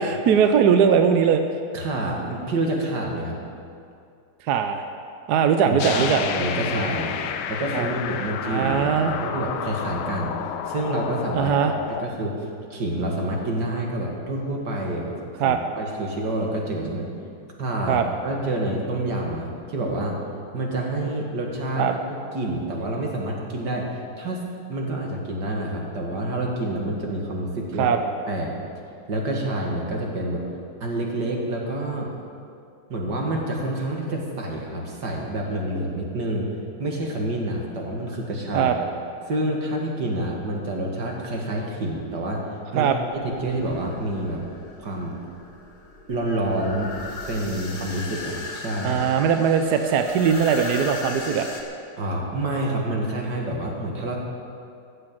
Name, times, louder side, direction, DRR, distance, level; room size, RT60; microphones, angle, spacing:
voice 1, 0.0-1.4 4.4-4.8 5.3-6.2 7.7-7.9 8.4-9.2 11.3-11.7 15.4-15.6 17.9-18.0 21.8-21.9 27.8-28.0 38.5-38.7 42.7-43.0 48.8-51.5, right 7 dB, 70° right, 7 dB, 1.0 m, -20 dB
voice 2, 1.7-3.4 5.7-7.1 7.5-11.5 11.9-17.1 17.4-20.2 20.5-24.4 24.7-27.9 28.3-28.6 29.1-30.4 30.8-32.1 32.9-36.5 36.8-38.7 39.3-44.4 44.8-45.2 46.1-47.0 47.3-49.0 52.0-54.2, right 1 dB, 55° right, -1 dB, 2.4 m, -28 dB
sound 1, 5.8-12.1, left 8 dB, 75° left, 1.5 m, -30 dB
sound 2, 43.1-51.6, left 3 dB, 35° left, 1.6 m, -37 dB
15.0 x 8.6 x 7.5 m, 2.5 s
omnidirectional pair, 2.4 m